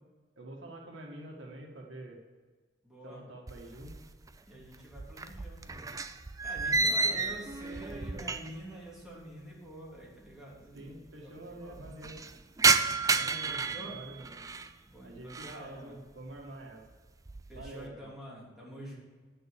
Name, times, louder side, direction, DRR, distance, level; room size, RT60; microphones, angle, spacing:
voice 1, 0.4-2.2 3.0-4.0 6.8-7.5 7.9-8.3 10.7-12.2 13.1-14.4 15.0-16.8 17.5-18.1, right 1 dB, 90° right, 0 dB, 1.7 m, -47 dB
voice 2, 2.8-3.2 4.5-5.9 6.4-11.9 13.4-14.0 14.8-16.0 17.5-19.0, right 1 dB, 5° right, -6 dB, 3.2 m, -47 dB
sound 1, 3.5-4.3 4.6-8.7 9.0-9.1 10.0-10.1 10.2-10.3 10.6-11.1 11.5-14.7 15.1-15.7 16.1-16.5 16.9-17.8, right 4 dB, 20° right, 0.4 m, -31 dB
9.7 x 6.5 x 8.1 m, 1.4 s
head